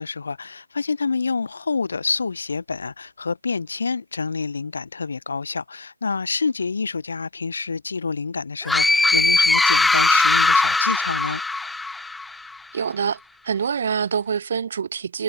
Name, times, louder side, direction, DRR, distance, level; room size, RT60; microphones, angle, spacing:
voice 1, 0.0-11.4, left 4 dB, 55° left, 3.9 m, -27 dB
sound 1, 8.7-12.3, left 3 dB, 5° left, 0.8 m, -19 dB
voice 2, 12.7-13.2 13.4-15.2, right 6 dB, 45° right, 3.4 m, -25 dB
figure-of-eight pair, 150°, 0 cm